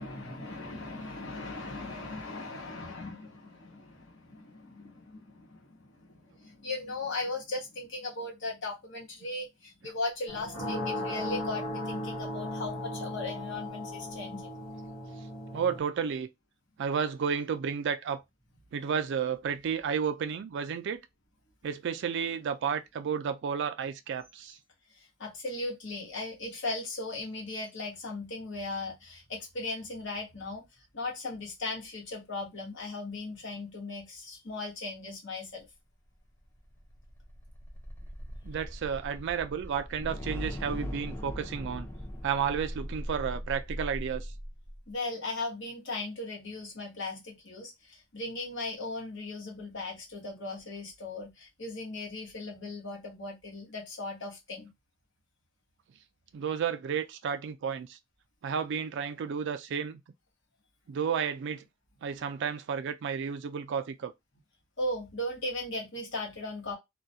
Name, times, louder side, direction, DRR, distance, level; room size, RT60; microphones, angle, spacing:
voice 1, 0.0-14.5 18.7-18.8 24.9-35.7 44.9-54.7 64.8-66.8, left 2 dB, 60° left, 1.1 m, -38 dB
sound 1, 10.3-15.8, left 1 dB, 85° left, 0.9 m, -36 dB
voice 2, 15.5-16.3 16.8-18.2 18.7-21.0 21.6-24.6 38.4-41.9 42.2-44.3 56.3-58.0 58.4-60.0 60.9-61.6 62.0-64.1, right 7 dB, 60° right, 0.3 m, -32 dB
sound 2, 36.4-44.8, equal, 10° left, 0.6 m, -39 dB
2.3 x 2.2 x 2.6 m
head